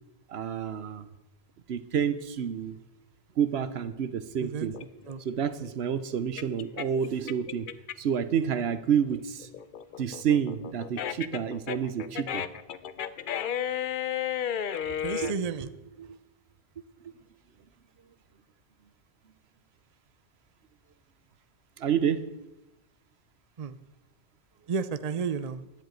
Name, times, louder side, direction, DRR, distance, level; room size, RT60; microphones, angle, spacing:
voice 1, 0.3-1.1 1.7-2.8 3.4-4.8 5.2-7.7 8.0-9.5 10.0-12.5 21.8-22.3, right 8 dB, 70° right, 13 dB, 1.0 m, -29 dB
sound 1, 4.7-8.2 8.6-15.3, left 9 dB, 55° left, 0.7 m, -33 dB
voice 2, 14.9-16.1 23.6-23.8 24.7-25.6, right 6 dB, 45° right, 12 dB, 0.6 m, -32 dB
11.0 x 7.9 x 9.0 m, 0.99 s
omnidirectional pair, 1.1 m